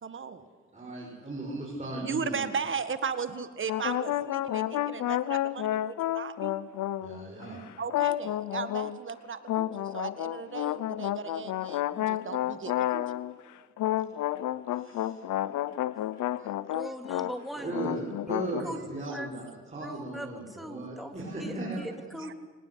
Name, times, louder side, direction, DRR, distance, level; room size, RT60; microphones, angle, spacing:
voice 1, 0.0-0.5 2.0-6.6 7.8-13.0 16.1-16.5 19.0-19.2 22.2-22.3, right 6 dB, 40° right, 11 dB, 1.8 m, -36 dB
voice 2, 0.7-2.4 7.0-7.6 14.7-15.2 17.6-22.1, right 2 dB, 25° right, -3 dB, 6.9 m, -37 dB
sound 1, 3.7-7.4 7.9-9.0 9.5-13.4 13.8-17.4 17.6-18.6, left 13 dB, 75° left, 0.8 m, -31 dB
voice 3, 16.7-17.7 18.6-18.8 19.1-19.3 19.8-22.3, equal, ahead, 5 dB, 2.9 m, -40 dB
24.5 x 19.0 x 8.3 m, 1.4 s
cardioid pair, 90°, 30 cm